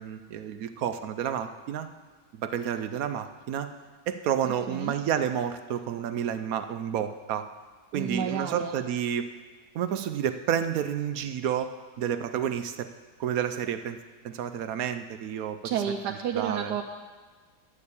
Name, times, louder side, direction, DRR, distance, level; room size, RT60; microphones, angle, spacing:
voice 1, 0.0-1.9 2.4-3.7 4.1-7.5 7.9-9.3 9.7-12.9 13.2-14.0 14.2-15.6 16.3-16.8, right 9 dB, 70° right, 10 dB, 1.0 m, -30 dB
voice 2, 7.9-8.8 15.6-16.8, right 8 dB, 90° right, 3 dB, 1.3 m, -30 dB
11.0 x 6.7 x 8.4 m, 1.4 s
omnidirectional pair, 1.8 m